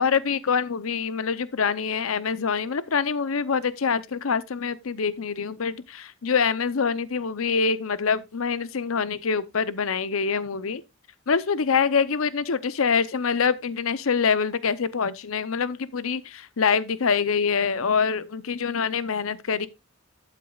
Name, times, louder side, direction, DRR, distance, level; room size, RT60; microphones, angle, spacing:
voice 1, 0.0-10.8 11.3-19.7, left 5 dB, 75° left, 0.7 m, -25 dB
12.5 x 8.3 x 2.4 m
head